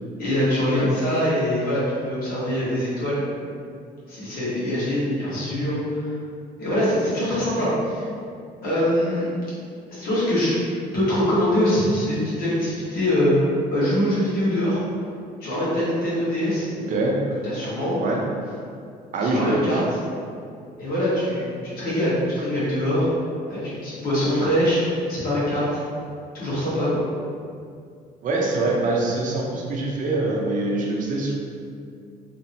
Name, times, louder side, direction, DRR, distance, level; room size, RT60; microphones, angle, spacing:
voice 1, 0.2-3.2 4.1-6.1 6.6-8.1 8.6-9.3 9.9-10.6 10.9-13.4 13.7-14.8 15.4-16.7 17.4-18.0 19.2-19.8 20.8-23.1 23.5-24.8 25.1-25.7 26.3-27.0, equal, 60° left, -9 dB, 1.2 m, -23 dB
voice 2, 19.1-19.9 28.2-31.4, right 2 dB, 50° right, -2 dB, 0.5 m, -24 dB
2.9 x 2.0 x 2.6 m, 2.3 s
cardioid pair, 110°, 17 cm